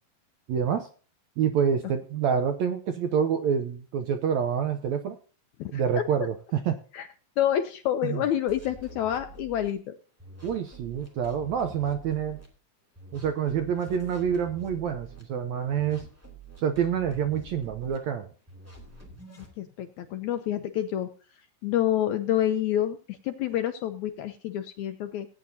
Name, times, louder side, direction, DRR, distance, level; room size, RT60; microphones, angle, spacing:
voice 1, 0.5-0.9 1.4-5.2 5.7-6.8 8.0-8.2 10.4-12.4 13.1-16.1 16.6-18.3, right 7 dB, 75° right, 8 dB, 1.7 m, -27 dB
voice 2, 7.4-9.9 19.6-21.1 21.6-25.3, left 11 dB, 80° left, 8 dB, 1.7 m, -28 dB
sound 1, 8.5-9.7 10.2-12.5 12.9-15.2 15.7-18.0 18.5-19.5, right 2 dB, 5° right, 1.5 m, -47 dB
17.5 x 8.9 x 2.7 m, 0.39 s
omnidirectional pair, 3.9 m